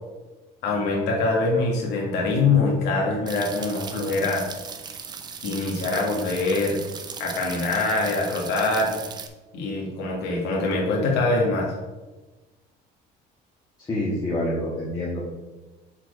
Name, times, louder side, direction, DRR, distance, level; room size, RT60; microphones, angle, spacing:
voice 1, 0.6-4.5 5.4-6.8 7.2-8.9 9.5-11.7, left 3 dB, 70° left, -2 dB, 1.9 m, -24 dB
sound 1, 3.3-9.3, right 6 dB, 25° right, 0.6 m, -38 dB
voice 2, 13.8-15.2, left 1 dB, 20° left, -7 dB, 1.6 m, -27 dB
7.3 x 4.5 x 5.1 m, 1.2 s
cardioid pair, 165°, 18 cm